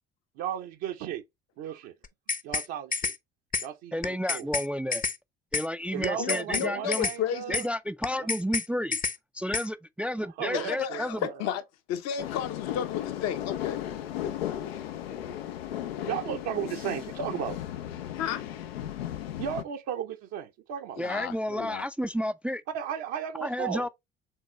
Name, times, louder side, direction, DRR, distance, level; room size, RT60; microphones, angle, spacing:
voice 1, 0.4-1.2 1.6-1.9 2.4-3.1 3.6-4.5 5.9-7.7 8.2-8.3 10.4-11.1 16.1-17.6 19.4-21.0 22.7-23.9, right 9 dB, 60° right, 0.7 m, -34 dB
sound 1, 2.0-2.7 2.9-3.2 3.5-3.7 4.0-4.7 4.9-5.2 5.5-5.7 6.0-6.7 6.9-7.2 7.5-7.7 8.0-8.7 8.9-9.2 9.5-9.7, left 5 dB, 30° left, 0.7 m, -29 dB
voice 2, 3.9-5.0 5.5-7.1 7.5-9.0 9.3-11.3 21.0-22.6 23.4-23.9, equal, 5° right, 0.3 m, -31 dB
voice 3, 6.2-7.6 10.5-11.6 11.9-13.8 14.2-14.3 14.6-14.7 18.2-18.4 21.0-21.8, left 9 dB, 60° left, 0.8 m, -32 dB
sound 2, 12.2-19.6, left 11 dB, 85° left, 0.5 m, -35 dB
4.7 x 3.5 x 2.9 m
hypercardioid pair, 55°, 29 cm